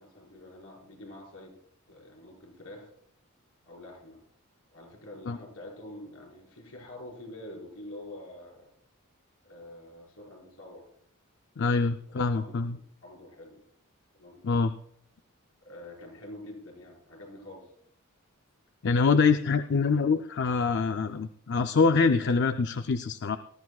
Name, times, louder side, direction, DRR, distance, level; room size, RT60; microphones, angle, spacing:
voice 1, 0.0-1.6 1.9-2.9 3.6-4.2 4.7-8.7 9.4-10.9 12.1-13.6 14.1-14.4 15.6-17.7, left 1 dB, 75° left, -1 dB, 5.6 m, -46 dB
voice 2, 11.6-12.8 14.4-14.7 18.8-23.4, left 4 dB, 55° left, 9 dB, 0.5 m, -25 dB
20.0 x 13.0 x 2.4 m, 0.65 s
head